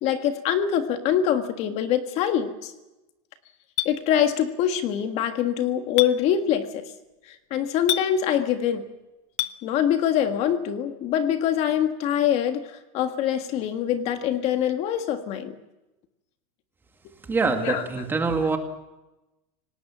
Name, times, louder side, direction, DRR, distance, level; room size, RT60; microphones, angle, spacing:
voice 1, 0.0-2.7 3.8-6.9 7.3-8.9 9.6-15.5 17.6-17.8, left 9 dB, 40° left, 8 dB, 1.7 m, -24 dB
Chink clink, 3.8-3.9 6.0-6.1 7.9-8.1 9.4-9.5, left 16 dB, 65° left, 1.0 m, -25 dB
voice 2, 17.3-18.6, right 4 dB, 10° right, 5 dB, 2.2 m, -24 dB
27.0 x 19.0 x 7.5 m, 0.99 s
supercardioid pair, 160°, 17 cm